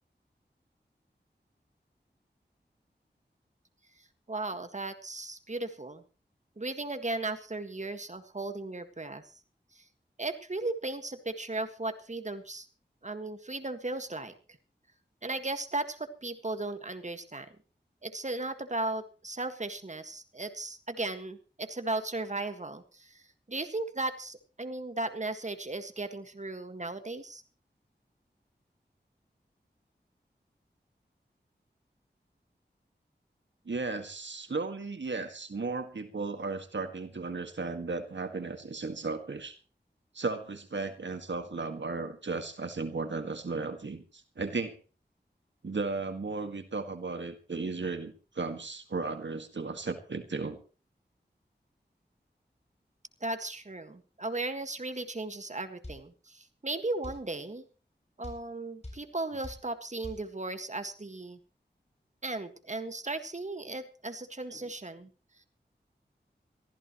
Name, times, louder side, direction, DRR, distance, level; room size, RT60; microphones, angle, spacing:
voice 1, 4.3-6.0 6.6-9.4 9.7-9.8 10.2-12.7 13.0-14.3 15.2-17.6 18.0-23.2 23.5-27.4 53.2-57.6 58.2-61.4 62.2-65.1, right 2 dB, 40° right, 9 dB, 1.8 m, -36 dB
voice 2, 33.7-39.6 40.1-44.8 45.6-50.6 64.5-64.7, right 3 dB, 90° right, 7 dB, 1.9 m, -35 dB
sound 1, 55.8-56.0 57.0-57.2 58.2-58.4 58.8-59.0 59.4-59.6 60.0-60.2, left 1 dB, 35° left, 7.8 m, -42 dB
23.0 x 15.0 x 3.1 m, 0.36 s
wide cardioid pair, 45°, 18 cm